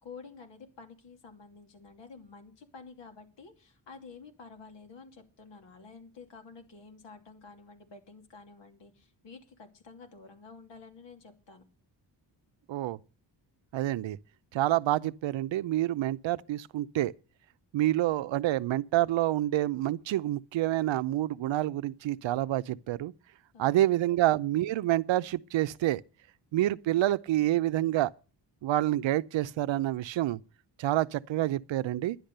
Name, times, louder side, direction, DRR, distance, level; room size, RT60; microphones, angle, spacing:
voice 1, 0.0-11.6 23.5-23.7 24.1-24.2, left 4 dB, 70° left, 2.7 m, -50 dB
voice 2, 13.7-14.2 14.5-17.1 17.7-23.1 23.6-26.0 26.5-28.1 28.6-30.4 30.8-32.2, right 14 dB, 85° right, 0.6 m, -28 dB
11.0 x 10.5 x 6.7 m
wide cardioid pair, 155°, 44 cm